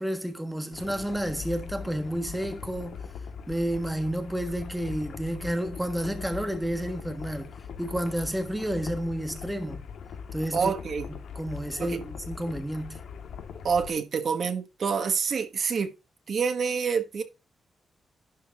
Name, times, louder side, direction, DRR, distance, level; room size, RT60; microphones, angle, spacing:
voice 1, 0.0-3.0 3.5-7.5 7.8-9.8 10.3-10.7 11.3-13.0, right 1 dB, 5° right, 1.4 m, -31 dB
sound 1, 0.7-13.9, left 6 dB, 85° left, 1.7 m, -41 dB
voice 2, 10.5-11.1 11.8-12.0 13.6-15.9 16.3-17.2, right 6 dB, 50° right, 1.2 m, -27 dB
11.5 x 4.1 x 6.2 m
wide cardioid pair, 145°, 0 cm